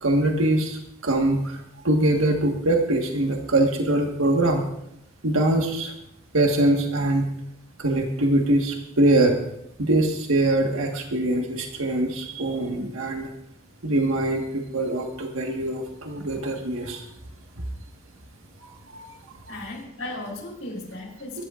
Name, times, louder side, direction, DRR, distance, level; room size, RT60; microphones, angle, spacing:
voice 1, 0.0-1.6 1.8-4.6 5.2-5.9 6.3-7.3 7.8-9.4 9.8-13.3 13.8-17.0 18.9-19.0, right 1 dB, 90° right, 2 dB, 1.6 m, -23 dB
voice 2, 19.5-21.4, left 2 dB, 75° left, 0 dB, 4.0 m, -36 dB
23.0 x 13.5 x 2.5 m, 0.77 s
head